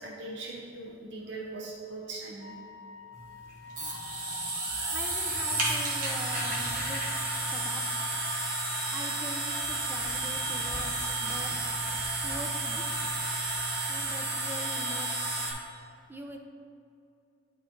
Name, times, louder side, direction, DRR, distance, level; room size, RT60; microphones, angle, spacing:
voice 1, 0.0-2.5, right 2 dB, 65° right, -1 dB, 0.8 m, -40 dB
Wind instrument woodwind instrument, 2.4-7.2, left 5 dB, 60° left, 1.2 m, -47 dB
sound 1, 3.1-15.5, right 2 dB, 45° right, 1.3 m, -32 dB
voice 2, 4.9-7.0 7.4-7.8 8.9-10.9 11.2-11.5 12.2-13.1 13.9-15.4 16.1-16.4, equal, 10° right, 4 dB, 0.4 m, -43 dB
11.0 x 3.9 x 2.9 m, 2.5 s
head